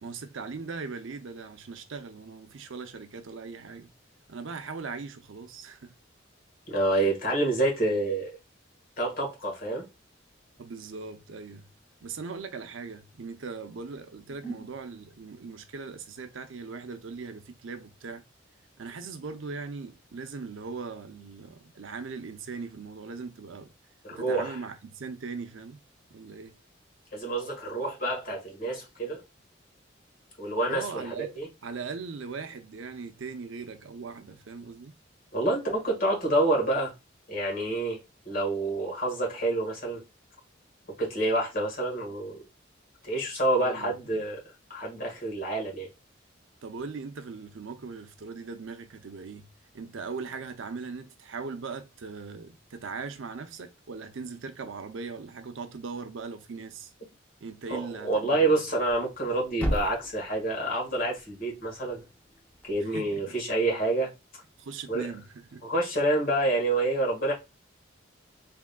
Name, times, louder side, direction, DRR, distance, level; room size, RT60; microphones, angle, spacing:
voice 1, 0.0-3.9 4.3-5.9 10.6-11.7 12.0-18.2 18.8-23.7 24.1-25.8 26.1-26.6 30.7-35.0 43.6-44.2 46.6-49.5 49.7-56.9 57.4-58.6 62.8-63.4 64.6-65.7, right 4 dB, 80° right, 0.6 m, -39 dB
voice 2, 6.7-8.3 9.0-9.8 14.4-14.6 24.0-24.6 27.1-29.2 30.4-31.5 35.3-36.9 37.3-38.0 38.2-40.0 41.0-42.4 43.0-44.4 44.7-45.9 57.7-62.0 62.7-64.1 64.9-65.1 65.6-67.3, right 2 dB, 45° left, 1.7 m, -28 dB
Thump thud, 58.7-62.8, equal, 10° left, 0.6 m, -37 dB
3.6 x 3.5 x 2.2 m
head